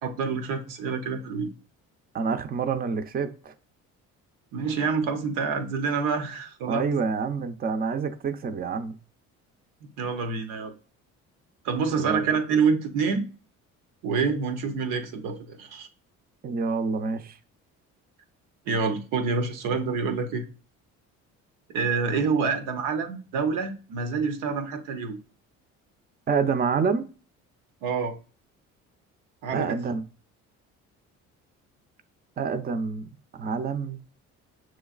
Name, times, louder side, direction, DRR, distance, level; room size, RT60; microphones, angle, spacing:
voice 1, 0.0-1.5 4.5-6.9 9.8-10.7 11.6-13.2 14.0-15.9 18.7-20.4 21.7-25.2 27.8-28.2 29.4-29.8, right 5 dB, 85° right, 0.8 m, -27 dB
voice 2, 2.1-3.5 6.7-9.0 11.9-12.3 16.4-17.4 26.3-27.1 29.5-30.0 32.4-34.0, right 5 dB, 30° right, 0.5 m, -27 dB
6.2 x 3.1 x 2.4 m
cardioid pair, 85°, 31 cm